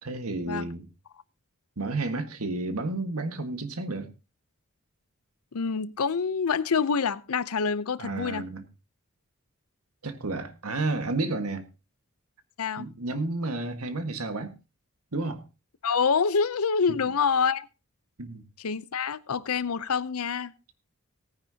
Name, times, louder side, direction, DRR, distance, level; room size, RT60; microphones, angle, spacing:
voice 1, 0.0-0.9 1.8-4.1 8.0-8.6 10.0-11.6 12.8-14.5 15.1-15.4 18.2-18.4, right 2 dB, 85° right, 1.6 m, -31 dB
voice 2, 5.5-8.4 12.6-12.9 15.8-17.7 18.6-20.5, left 5 dB, 80° left, 0.6 m, -26 dB
17.5 x 10.0 x 2.8 m
head